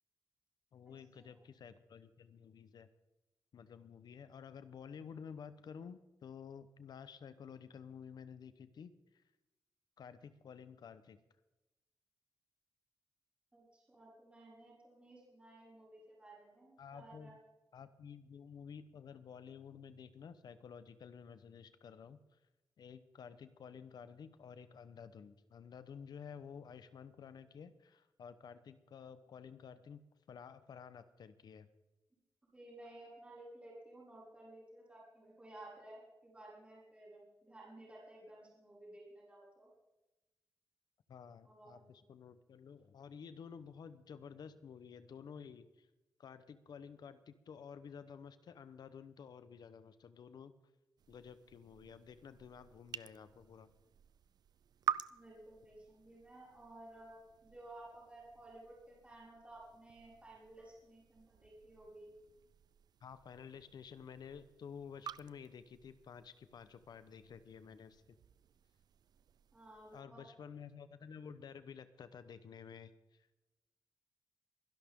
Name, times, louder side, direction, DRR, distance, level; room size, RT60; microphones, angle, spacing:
voice 1, 0.7-2.9 3.5-9.2 10.0-11.2 16.8-17.4 17.7-22.4 22.8-30.0 30.3-31.7 41.1-45.9 46.2-50.5 51.1-53.7 63.0-68.2 69.9-73.3, left 7 dB, 70° left, 13 dB, 1.0 m, -52 dB
voice 2, 13.5-17.4 32.5-39.7 41.4-41.8 55.1-62.1 69.5-70.2, right 1 dB, 15° right, -6 dB, 5.8 m, -55 dB
sound 1, 51.0-70.0, right 8 dB, 65° right, 0.4 m, -49 dB
24.0 x 11.5 x 3.7 m, 1.0 s
wide cardioid pair, 145°, 7 cm